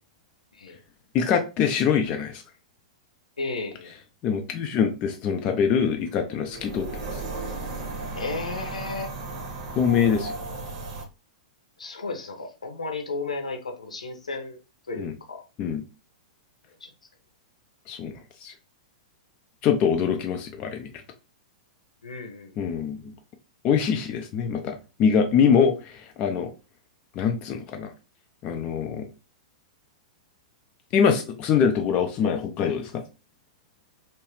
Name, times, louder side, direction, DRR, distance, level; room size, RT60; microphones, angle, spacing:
voice 1, 1.1-2.4 4.2-7.2 9.8-10.3 15.0-15.1 15.6-15.8 17.9-18.1 18.4-18.5 19.6-20.9 22.6-23.1 23.6-26.5 27.2-27.9 28.4-29.1 30.9-33.0, left 7 dB, 30° left, 0.4 m, -24 dB
voice 2, 3.4-3.9 8.1-9.1 11.8-14.6 14.9-15.4 16.8-16.9 22.0-22.7, left 3 dB, 75° left, 0.7 m, -34 dB
sound 1, 6.5-11.1, right 3 dB, 45° right, 0.8 m, -35 dB
3.0 x 2.3 x 2.9 m
figure-of-eight pair, 100°, 4 cm